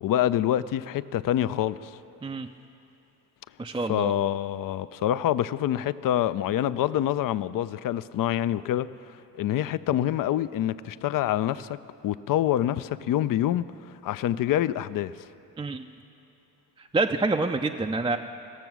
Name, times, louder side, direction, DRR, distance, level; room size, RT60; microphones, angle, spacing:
voice 1, 0.0-1.9 3.8-13.7 14.0-15.1, left 12 dB, 50° left, 0.5 m, -26 dB
voice 2, 3.6-4.1 15.6-15.9 16.8-18.2, right 3 dB, 10° right, 0.4 m, -27 dB
17.0 x 6.9 x 6.0 m
supercardioid pair, 55°, 44 cm